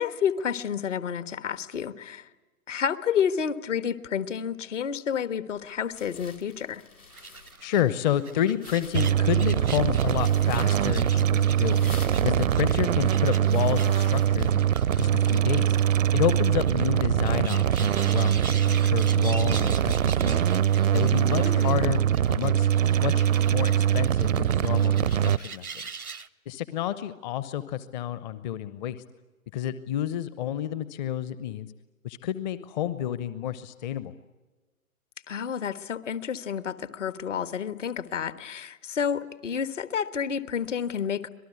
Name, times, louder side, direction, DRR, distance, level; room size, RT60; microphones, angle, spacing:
voice 1, 0.0-2.3 2.7-6.8 21.4-21.8 35.3-41.3, left 7 dB, 60° left, 13 dB, 1.5 m, -30 dB
sound 1, 5.5-14.3, left 4 dB, 85° left, 4.4 m, -49 dB
sound 2, 7.1-26.3, right 5 dB, 90° right, 1.0 m, -43 dB
voice 2, 7.6-11.8 12.2-14.7 15.0-15.8 16.1-18.4 18.6-20.6 20.9-22.0 22.3-22.7 23.0-25.7 26.5-29.0 29.5-31.7 32.0-34.1, left 11 dB, 30° left, 14 dB, 0.9 m, -30 dB
sound 3, 8.9-25.4, right 10 dB, 65° right, 0.7 m, -23 dB
25.5 x 19.0 x 9.4 m, 1.2 s
figure-of-eight pair, 115°, 43 cm